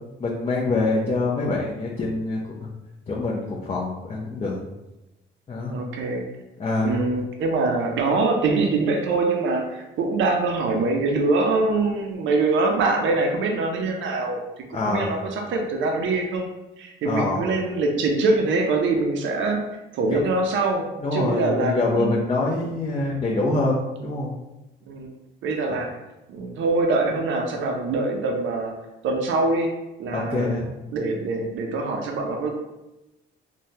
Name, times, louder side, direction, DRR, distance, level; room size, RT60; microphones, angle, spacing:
voice 1, 0.2-2.7 3.1-4.6 5.5-5.7 6.6-7.0 14.7-15.1 17.0-17.4 20.1-20.2 21.0-24.4 25.7-25.8 30.1-30.7, left 2 dB, 30° left, -5 dB, 0.6 m, -25 dB
voice 2, 5.7-6.2 6.8-14.4 14.9-16.5 16.8-19.6 19.9-20.8 21.1-22.2 22.5-22.7 24.9-25.1 25.4-25.9 26.3-28.7 29.0-29.7 30.0-32.5, right 3 dB, 75° right, 2 dB, 0.5 m, -24 dB
3.6 x 2.2 x 2.7 m, 0.99 s
cardioid pair, 90°, 20 cm